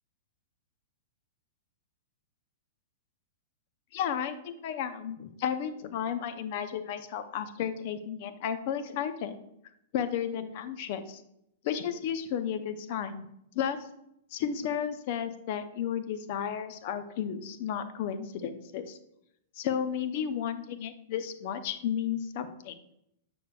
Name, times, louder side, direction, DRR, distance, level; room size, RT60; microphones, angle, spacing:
voice 1, 3.9-9.4 9.9-11.2 11.6-13.2 13.5-13.8 14.3-19.0 19.6-22.8, left 8 dB, 55° left, 10 dB, 0.6 m, -33 dB
6.9 x 6.5 x 2.3 m, 0.78 s
hypercardioid pair, 120°, 0 cm